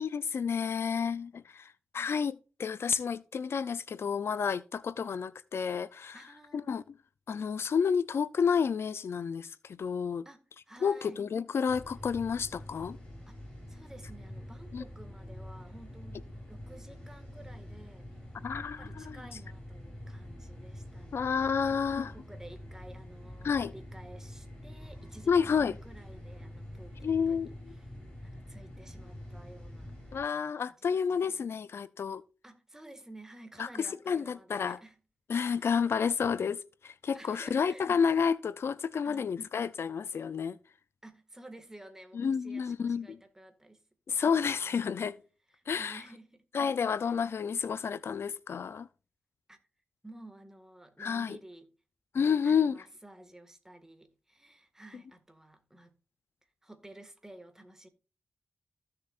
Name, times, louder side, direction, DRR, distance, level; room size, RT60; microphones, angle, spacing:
voice 1, 0.0-6.2 6.5-6.8 7.3-10.3 10.8-13.0 14.7-14.8 18.4-19.2 21.1-22.1 23.4-23.7 25.3-25.8 27.0-27.7 30.1-32.2 33.6-33.7 34.1-34.8 35.3-40.6 42.1-43.2 44.1-45.2 45.7-46.0 46.5-48.9 51.0-51.4 52.1-52.8, left 6 dB, 70° left, 0.4 m, -30 dB
voice 2, 6.1-6.7 10.3-11.3 13.3-18.1 18.8-21.3 21.6-27.5 28.2-30.2 30.6-31.4 32.4-35.0 35.6-35.7 37.1-37.9 39.0-39.3 41.0-43.8 44.1-44.8 45.5-46.4 49.5-49.6 50.0-51.7 52.2-56.0 56.6-57.9, right 1 dB, 10° right, 1.8 m, -53 dB
sound 1, 11.7-30.2, left 1 dB, 15° left, 5.8 m, -46 dB
15.0 x 6.7 x 2.5 m
wide cardioid pair, 105°, 4 cm